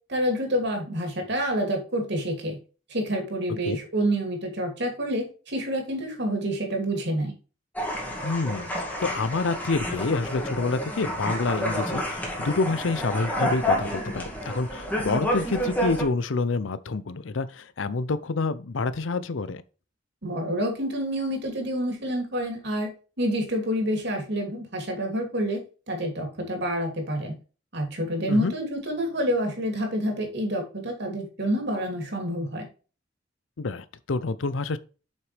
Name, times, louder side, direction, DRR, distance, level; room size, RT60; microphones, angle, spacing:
voice 1, 0.1-2.6 2.9-7.3 20.2-22.9 23.2-27.3 27.7-32.7, equal, 60° right, 2.9 m, -28 dB
sound 1, 7.8-16.0, equal, 10° left, 2.1 m, -29 dB
voice 2, 8.2-19.6 28.3-28.5 33.6-34.8, left 3 dB, 85° left, 0.6 m, -28 dB
7.5 x 5.9 x 3.3 m
head